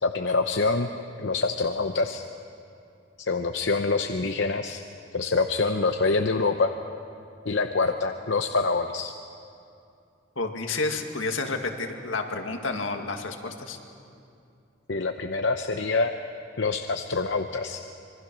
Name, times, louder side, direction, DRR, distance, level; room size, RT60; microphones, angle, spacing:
voice 1, 0.0-0.9 1.2-2.2 3.3-4.8 5.1-6.7 7.5-9.1 14.9-16.1 16.6-17.8, left 3 dB, 65° left, 6 dB, 0.8 m, -25 dB
voice 2, 10.4-13.8, left 3 dB, 85° left, 4 dB, 2.0 m, -30 dB
25.5 x 23.0 x 6.1 m, 2.6 s
head